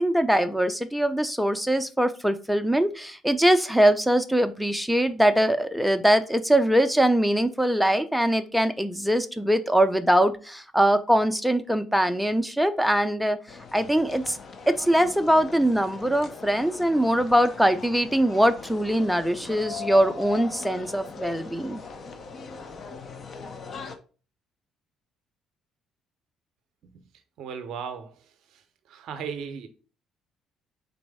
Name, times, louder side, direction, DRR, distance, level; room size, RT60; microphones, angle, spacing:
voice 1, 0.0-13.4 13.7-14.4 14.7-21.8, right 1 dB, ahead, 0.5 m, -22 dB
sound 1, 13.5-24.0, left 5 dB, 45° left, 0.6 m, -40 dB
voice 2, 27.4-28.2 28.5-28.6 28.9-29.7, right 6 dB, 60° right, 0.6 m, -36 dB
4.0 x 3.3 x 3.4 m
figure-of-eight pair, 50°, 0 cm